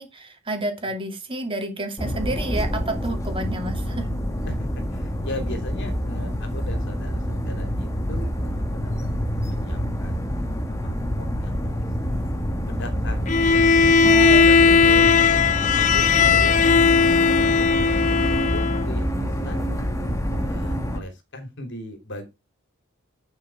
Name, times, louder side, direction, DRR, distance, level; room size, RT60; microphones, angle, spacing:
voice 1, 0.0-4.2 14.0-14.9, right 2 dB, 25° right, 4 dB, 2.7 m, -30 dB
sound 1, 2.0-21.0, equal, 15° left, 1.6 m, -27 dB
voice 2, 4.4-12.2 12.7-15.1 15.4-19.9 20.4-22.3, left 1 dB, 55° left, 7 dB, 3.2 m, -38 dB
Bowed string instrument, 13.3-18.9, left 5 dB, 35° left, 0.7 m, -17 dB
11.0 x 5.7 x 4.7 m, 0.24 s
head